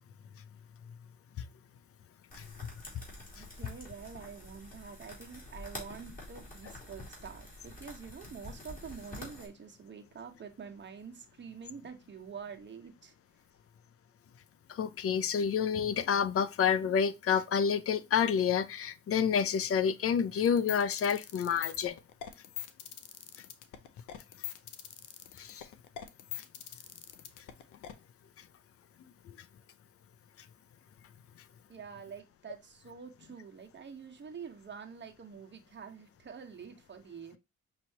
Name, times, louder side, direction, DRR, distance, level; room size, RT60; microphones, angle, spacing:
sound 1, 2.3-9.5, left 1 dB, 30° left, 3.1 m, -48 dB
voice 1, 3.3-13.1 31.7-37.4, right 6 dB, 35° right, 1.2 m, -47 dB
voice 2, 14.7-22.0 25.4-25.7, left 7 dB, 50° left, 0.6 m, -29 dB
sound 2, 20.4-27.9, left 12 dB, 85° left, 0.8 m, -42 dB
5.6 x 3.0 x 2.8 m
cardioid pair, 90°, 30 cm